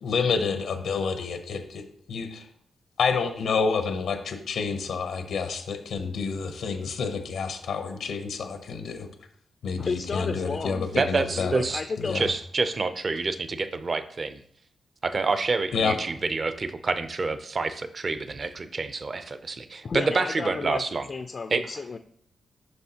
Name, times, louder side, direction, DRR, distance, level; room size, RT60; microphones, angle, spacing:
voice 1, 0.0-1.8 2.1-2.5 3.0-9.1 9.6-11.5 12.0-12.3 15.7-16.0, left 5 dB, 85° left, 7 dB, 0.7 m, -28 dB
voice 2, 9.8-12.2 19.8-22.0, left 4 dB, 45° left, 8 dB, 0.3 m, -32 dB
voice 3, 11.0-11.8 12.1-14.4 15.0-21.1 21.5-21.7, right 3 dB, 40° right, 11 dB, 0.5 m, -27 dB
7.7 x 5.6 x 2.8 m, 0.65 s
cardioid pair, 115°, 0 cm